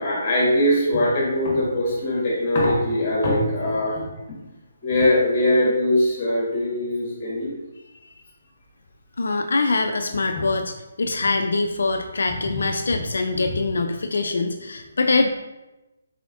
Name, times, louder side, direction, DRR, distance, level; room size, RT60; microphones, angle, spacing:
voice 1, 0.0-4.1 4.8-7.5 10.3-10.4 12.9-13.0 13.4-13.6, left 1 dB, 30° left, -3 dB, 1.3 m, -21 dB
voice 2, 9.2-15.3, left 3 dB, 70° left, 5 dB, 0.3 m, -23 dB
4.7 x 4.1 x 2.6 m, 1.0 s
figure-of-eight pair, 145°, 0 cm